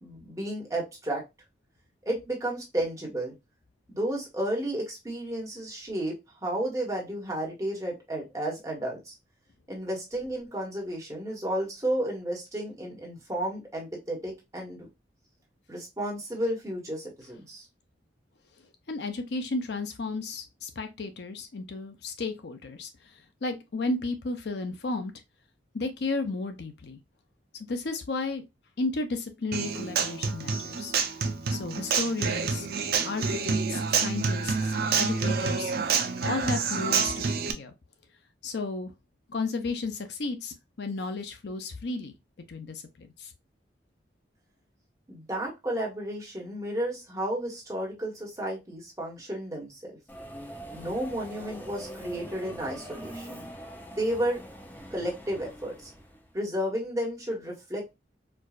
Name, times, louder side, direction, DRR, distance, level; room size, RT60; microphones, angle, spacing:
voice 1, 0.0-1.2 2.0-3.3 3.9-9.1 9.7-14.9 15.7-17.6 45.1-49.9 50.7-53.4 54.0-54.4 54.9-55.9 56.3-57.9, right 1 dB, 15° right, 1.3 m, -32 dB
voice 2, 18.9-22.9 23.4-25.1 25.7-27.0 27.7-28.4 28.8-30.9 31.5-32.7 33.0-35.7 36.2-37.7 38.4-38.9 39.3-42.1 42.5-43.3, left 3 dB, 60° left, 0.5 m, -33 dB
Human voice / Acoustic guitar, 29.5-37.5, right 5 dB, 55° right, 0.5 m, -28 dB
Subway metro underground, 50.1-56.3, equal, 10° left, 0.6 m, -43 dB
4.5 x 2.4 x 2.4 m
head